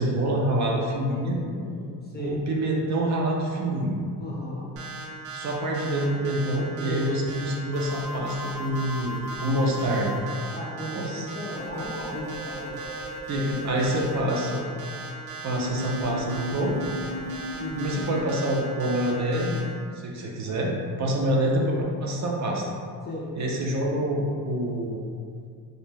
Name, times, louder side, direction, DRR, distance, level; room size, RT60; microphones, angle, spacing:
voice 1, 0.0-1.4 2.2-4.0 5.3-10.2 10.9-11.3 13.3-14.6 15.4-16.8 17.7-19.6 20.0-20.7 21.0-22.6 23.4-25.0, right 1 dB, 45° right, -1 dB, 0.5 m, -26 dB
voice 2, 1.1-2.4 4.2-4.7 6.8-7.2 10.5-12.8 17.6-18.0 23.0-23.3, left 1 dB, 25° left, -5 dB, 0.3 m, -36 dB
sound 1, 4.8-19.6, right 4 dB, 75° right, 0.7 m, -38 dB
sound 2, 7.7-10.2 11.6-14.2 15.6-18.2, left 1 dB, 85° left, 0.6 m, -37 dB
2.6 x 2.1 x 3.3 m, 2.2 s
cardioid pair, 110°, 42 cm